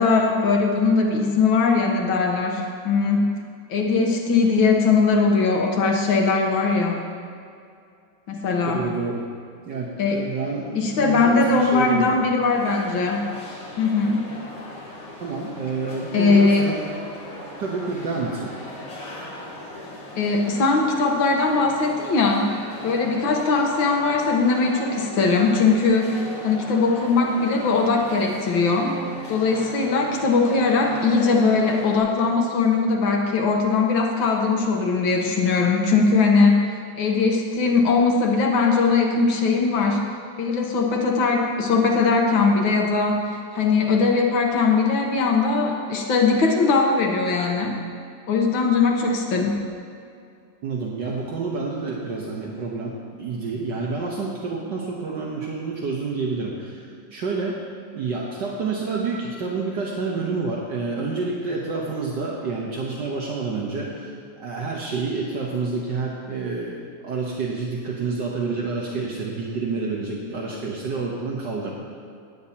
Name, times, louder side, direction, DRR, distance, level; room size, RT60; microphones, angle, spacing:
voice 1, 0.0-3.4 3.7-7.0 8.3-8.9 10.0-10.2 10.8-13.3 13.8-14.3 16.1-16.7 20.2-22.5 22.8-29.0 29.3-40.0 40.4-43.2 43.5-47.8 48.3-49.6, left 4 dB, 85° left, 1 dB, 1.8 m, -20 dB
voice 2, 8.7-9.2 9.7-12.2 15.2-16.8 17.6-18.5 50.6-57.6 57.9-71.8, right 4 dB, 65° right, -3 dB, 1.6 m, -28 dB
sound 1, 12.5-32.0, left 1 dB, 65° left, 2.9 m, -38 dB
17.5 x 8.9 x 2.9 m, 2.4 s
omnidirectional pair, 2.1 m